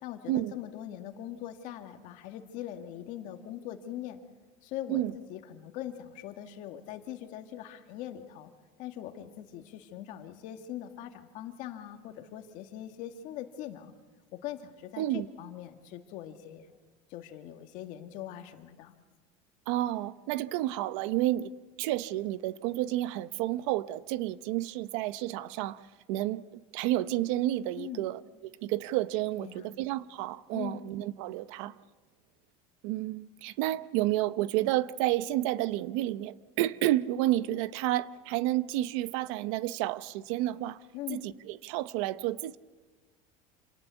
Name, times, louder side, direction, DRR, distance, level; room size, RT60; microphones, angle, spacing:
voice 1, 0.0-4.2 4.6-8.5 8.8-13.9 14.3-16.7 17.1-19.0 27.8-28.1 29.4-29.8 30.5-30.8 40.9-41.3, left 11 dB, 50° left, 2.0 m, -41 dB
voice 2, 15.0-15.3 19.7-21.5 21.8-25.8 26.1-28.2 28.6-31.7 32.8-40.8 41.1-42.6, right 15 dB, 70° right, 0.8 m, -30 dB
27.5 x 18.0 x 8.3 m
cardioid pair, 170°, 16 cm